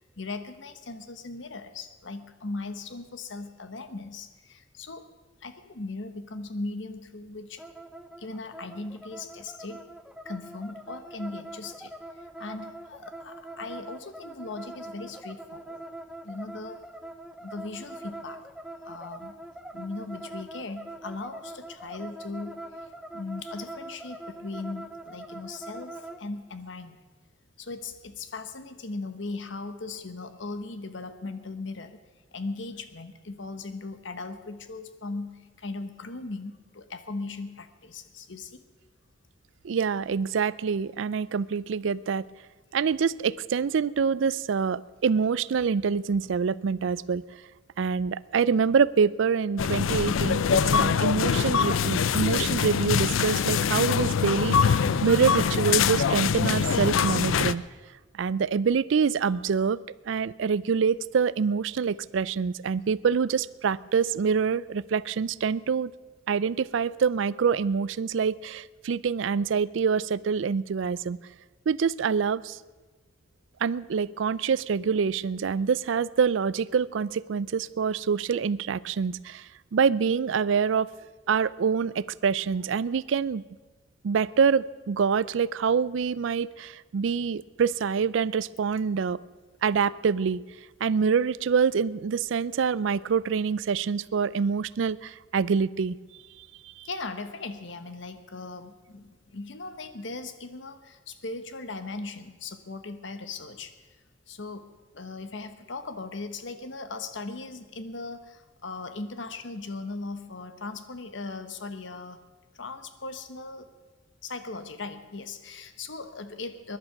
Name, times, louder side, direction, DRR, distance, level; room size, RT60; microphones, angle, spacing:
voice 1, 0.0-5.1 5.4-7.6 8.2-9.9 10.2-15.8 16.2-16.8 17.4-18.4 18.8-19.3 19.7-27.0 27.6-32.0 32.3-38.6 96.8-103.7 104.3-112.3 112.5-113.7 114.2-116.8, left 3 dB, 65° left, 10 dB, 1.2 m, -38 dB
sound 1, 7.6-26.2, right 2 dB, 5° right, 0.7 m, -43 dB
voice 2, 39.6-42.2 42.7-47.2 47.8-57.6 58.2-59.8 60.1-65.9 66.3-71.2 71.7-72.6 73.6-79.4 79.7-80.9 81.3-83.4 84.0-89.2 89.6-90.4 90.8-95.9, right 6 dB, 70° right, 20 dB, 0.4 m, -26 dB
sound 2, 49.6-57.5, left 6 dB, 85° left, 0.5 m, -24 dB
21.0 x 11.0 x 5.9 m, 1.3 s
head